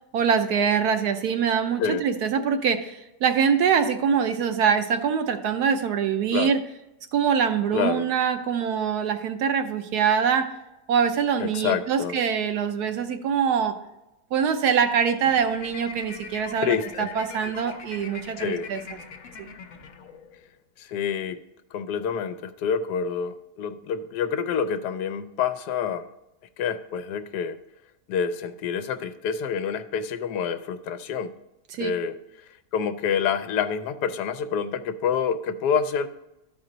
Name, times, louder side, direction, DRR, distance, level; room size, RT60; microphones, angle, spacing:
voice 1, 0.1-6.6 7.1-10.5 10.9-13.8 14.3-19.0 19.4-19.5 31.7-31.9, right 7 dB, 75° right, 7 dB, 1.2 m, -24 dB
voice 2, 7.7-8.1 11.4-12.1 16.6-17.1 18.4-18.7 20.8-21.4 21.7-26.1 26.6-27.6 28.1-31.3 31.8-32.2 32.7-36.1, left 7 dB, 80° left, 10 dB, 1.2 m, -27 dB
sound 1, 15.2-20.5, left 6 dB, 65° left, 1.1 m, -42 dB
12.5 x 4.4 x 3.9 m, 0.92 s
omnidirectional pair, 1.8 m